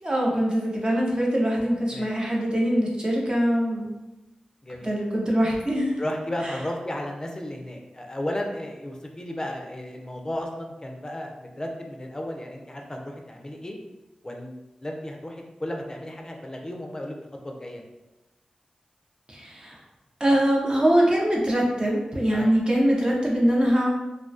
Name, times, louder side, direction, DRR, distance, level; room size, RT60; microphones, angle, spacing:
voice 1, 0.0-3.9 4.8-6.0 19.3-19.8 20.2-23.9, equal, 35° right, -3 dB, 0.6 m, -23 dB
voice 2, 4.6-4.9 6.0-13.8 14.2-17.1 17.4-17.8 22.3-22.5, left 1 dB, 25° left, 2 dB, 0.5 m, -34 dB
2.2 x 2.2 x 2.5 m, 1.0 s
cardioid pair, 40°, 3 cm